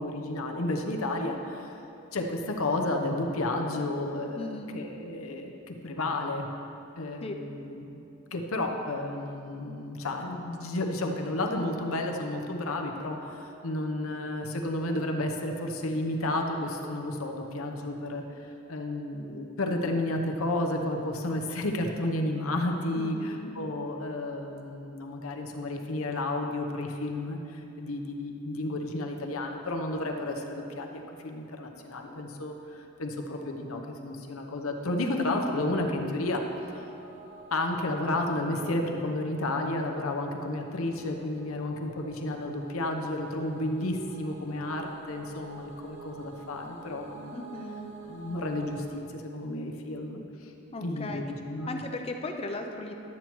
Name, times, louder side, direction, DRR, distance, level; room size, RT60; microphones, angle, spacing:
voice 1, 0.0-1.7 2.1-6.5 7.0-8.0 8.3-36.4 36.7-36.8 37.5-47.4 48.0-51.8, left 1 dB, 80° left, 3 dB, 0.8 m, -32 dB
voice 2, 4.4-4.8 7.2-7.4 23.0-23.5 47.3-47.9 50.7-51.2 51.7-53.0, left 2 dB, 25° left, 4 dB, 0.4 m, -37 dB
sound 1, 36.2-49.0, right 4 dB, 60° right, 1.0 m, -50 dB
12.0 x 8.3 x 3.0 m, 2.9 s
head